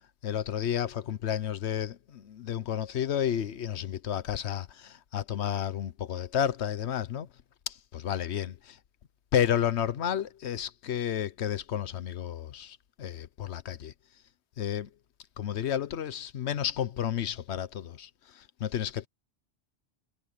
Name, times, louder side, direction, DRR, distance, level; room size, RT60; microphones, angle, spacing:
voice 1, 0.2-7.3 7.7-8.8 9.3-13.9 14.6-14.9 15.4-19.1, left 9 dB, 75° left, 1.1 m, -31 dB
omnidirectional pair, 1.1 m